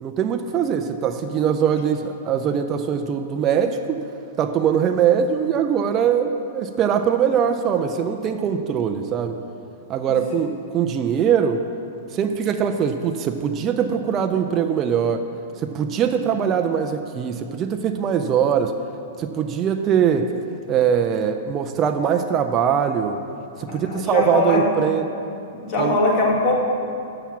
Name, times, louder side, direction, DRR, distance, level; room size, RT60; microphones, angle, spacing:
voice 1, 0.0-4.0 4.4-9.4 9.9-11.6 12.1-15.2 15.6-18.7 19.2-20.3 20.7-23.2 23.6-25.1 25.8-26.0, right 8 dB, 25° right, 6 dB, 0.4 m, -22 dB
voice 2, 23.7-24.7 25.6-26.6, left 2 dB, 35° left, -2 dB, 1.8 m, -21 dB
7.3 x 5.8 x 7.1 m, 2.7 s
supercardioid pair, 160°, 0 cm